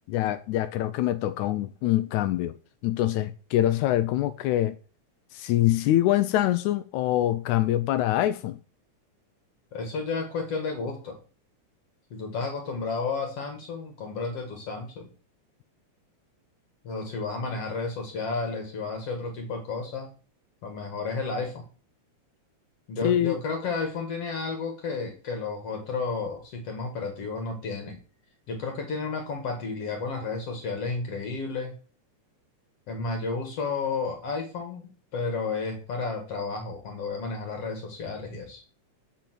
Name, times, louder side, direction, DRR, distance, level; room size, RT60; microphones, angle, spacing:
voice 1, 0.1-2.5 2.8-4.8 5.3-8.6 23.0-23.4, left 13 dB, 85° left, 2.0 m, -24 dB
voice 2, 9.7-11.2 12.1-15.1 16.8-20.1 20.6-21.6 22.9-28.0 28.5-31.7 32.9-38.6, left 4 dB, 55° left, 2.6 m, -32 dB
9.0 x 5.3 x 6.0 m
omnidirectional pair, 3.4 m